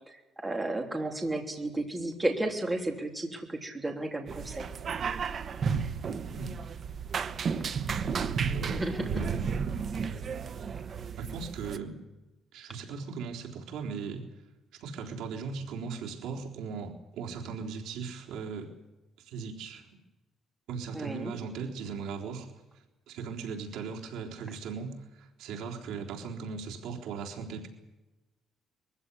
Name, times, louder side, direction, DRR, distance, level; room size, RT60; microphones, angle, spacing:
voice 1, 0.4-4.7 8.7-9.1 20.9-21.3, right 1 dB, 15° right, 3 dB, 3.4 m, -32 dB
sound 1, 4.3-11.8, right 6 dB, 40° right, 1.1 m, -33 dB
voice 2, 8.5-9.4 11.2-12.0 12.5-14.3 14.7-18.7 19.2-19.9 20.7-27.7, right 5 dB, 85° right, 0 dB, 3.7 m, -38 dB
23.0 x 15.5 x 9.9 m, 1.0 s
cardioid pair, 145°, 0 cm